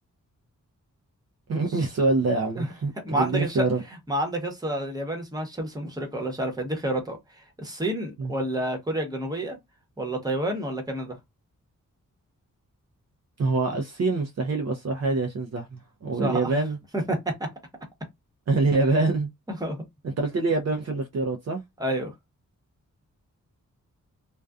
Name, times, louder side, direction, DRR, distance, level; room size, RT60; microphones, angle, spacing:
voice 1, 1.5-3.8 8.2-8.3 13.4-16.8 18.5-19.3 20.0-21.6, right 3 dB, 50° right, 0.5 m, -25 dB
voice 2, 3.0-3.7 4.1-7.2 7.6-9.6 10.0-11.2 16.2-16.5 16.9-17.5 19.5-19.8 21.8-22.1, right 1 dB, 10° right, 1.0 m, -29 dB
2.5 x 2.2 x 2.3 m
wide cardioid pair, 95°, 33 cm